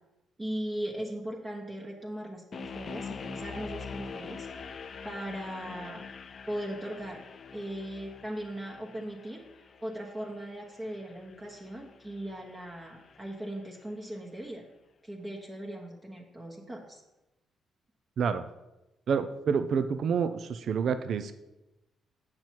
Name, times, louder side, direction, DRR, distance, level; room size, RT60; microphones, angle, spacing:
voice 1, 0.4-4.8 5.0-6.0 6.5-7.2 7.5-9.4 9.8-14.6 15.0-17.0, right 1 dB, 20° right, -1 dB, 1.2 m, -38 dB
sound 1, 2.5-13.6, left 5 dB, 50° left, 0.5 m, -45 dB
voice 2, 19.1-21.3, right 6 dB, 60° right, 11 dB, 0.5 m, -28 dB
7.7 x 5.8 x 4.5 m, 0.97 s
cardioid pair, 90°, 0 cm